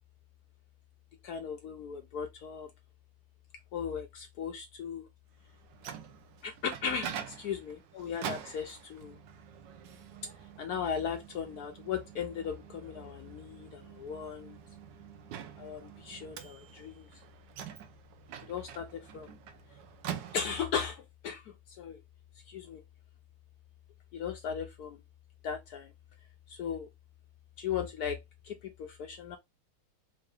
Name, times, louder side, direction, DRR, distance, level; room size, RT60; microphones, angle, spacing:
voice 1, 1.2-2.7 3.7-5.0 6.4-9.2 10.6-14.6 15.6-17.1 18.5-19.3 20.3-21.4 21.8-22.0 22.5-22.8 24.1-25.0 25.4-25.9 26.5-26.9 27.6-28.2 28.4-29.4, left 7 dB, 75° left, 0.8 m, -37 dB
Microwave oven, 5.5-20.9, right 9 dB, 70° right, 1.2 m, -46 dB
4.6 x 2.5 x 3.3 m
omnidirectional pair, 2.3 m